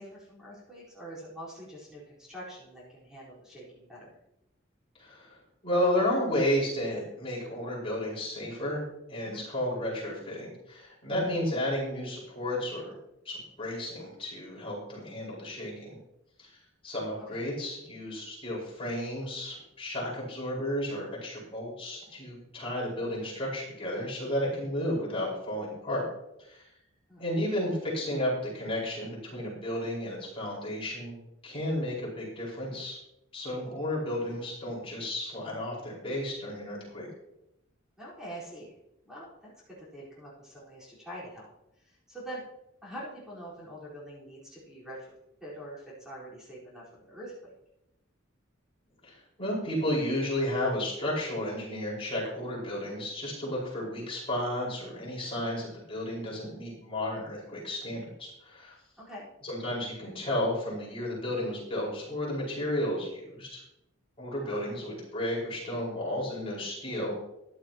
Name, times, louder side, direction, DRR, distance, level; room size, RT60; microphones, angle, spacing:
voice 1, 0.0-4.2 9.2-9.5 17.3-17.4 27.1-27.2 38.0-38.8 39.0-41.5 41.8-42.5 42.8-45.1 45.4-47.5 59.0-59.3 64.4-64.7, right 1 dB, 5° right, -8 dB, 4.4 m, -45 dB
voice 2, 5.0-5.4 5.6-12.9 13.2-16.0 16.4-16.5 16.8-26.1 26.5-26.6 27.2-33.0 33.3-37.1 49.0-58.7 59.4-63.6 64.2-67.1, left 1 dB, 30° left, -5 dB, 5.1 m, -32 dB
15.0 x 11.5 x 3.0 m, 0.86 s
head